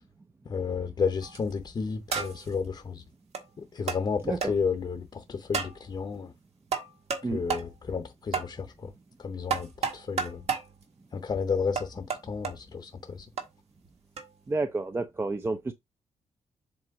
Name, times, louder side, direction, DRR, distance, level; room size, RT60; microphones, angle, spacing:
voice 1, 0.4-3.0 3.6-6.3 7.3-8.9 9.2-10.4 11.1-13.3, left 5 dB, 35° left, 0.7 m, -32 dB
sound 1, 1.2-1.5 2.1-2.5 3.3-3.4 3.9-4.0 4.4-4.5 5.5-5.8 6.7-7.2 7.5-7.7 8.3-8.5 9.5-10.7 11.8-12.5 13.4-13.5 14.2-14.3, right 5 dB, 60° right, 1.5 m, -31 dB
voice 2, 14.5-15.7, right 3 dB, 20° right, 0.5 m, -30 dB
7.7 x 2.9 x 4.7 m
wide cardioid pair, 170°, 12 cm